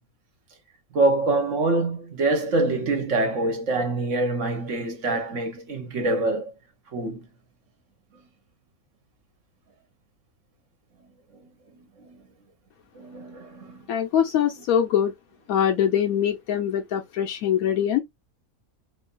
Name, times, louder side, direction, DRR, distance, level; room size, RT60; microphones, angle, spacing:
voice 1, 0.9-6.4 6.9-7.2 11.4-11.5 12.0-12.2 13.0-13.9, right 2 dB, 60° right, 1.3 m, -25 dB
voice 2, 13.9-15.1 15.5-18.0, left 9 dB, 75° left, 1.1 m, -23 dB
3.0 x 2.7 x 3.8 m
omnidirectional pair, 1.5 m